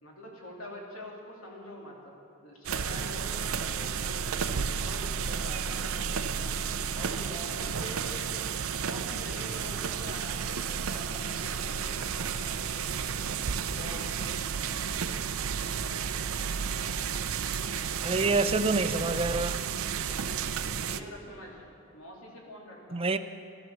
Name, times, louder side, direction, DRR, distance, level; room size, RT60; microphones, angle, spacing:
voice 1, 0.0-2.1 2.4-4.2 4.8-6.5 6.9-8.2 8.8-13.0 13.5-14.3 20.7-21.6 21.9-23.1, left 1 dB, 80° left, -1 dB, 2.9 m, -45 dB
sound 1, 2.6-21.0, right 6 dB, 85° right, 0.6 m, -32 dB
voice 2, 18.0-19.6 22.9-23.2, right 3 dB, 25° right, 10 dB, 0.6 m, -27 dB
14.0 x 12.0 x 6.9 m, 2.6 s
head